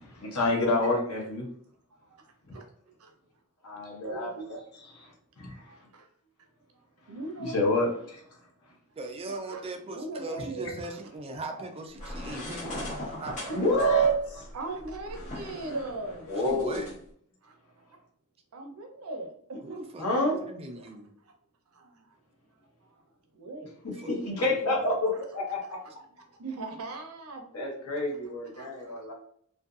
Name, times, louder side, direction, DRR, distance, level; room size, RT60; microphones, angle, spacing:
voice 1, 0.0-1.5 3.6-5.5 7.4-7.9 13.5-14.5 16.3-16.9 20.0-20.4 23.8-25.8 27.5-29.1, equal, 90° left, -1 dB, 0.9 m, -28 dB
voice 2, 1.9-2.6 3.0-3.1 4.0-4.8 5.6-6.1 6.7-7.8 9.5-11.0 12.0-12.4 12.7-13.0 13.5-13.6 14.5-16.3 17.4-17.5 18.5-19.8 20.8-20.9 21.2-21.3 21.7-22.2 22.6-23.0 23.3-23.7 25.8-25.9 26.2-27.4 28.5-29.0, right 2 dB, 75° right, 3 dB, 0.6 m, -40 dB
voice 3, 9.0-14.0 16.4-16.9 19.6-21.1 23.9-24.8, right 2 dB, 25° right, 5 dB, 0.3 m, -40 dB
sound 1, 12.0-16.9, left 1 dB, 35° left, 1.1 m, -40 dB
2.6 x 2.5 x 2.3 m, 0.62 s
head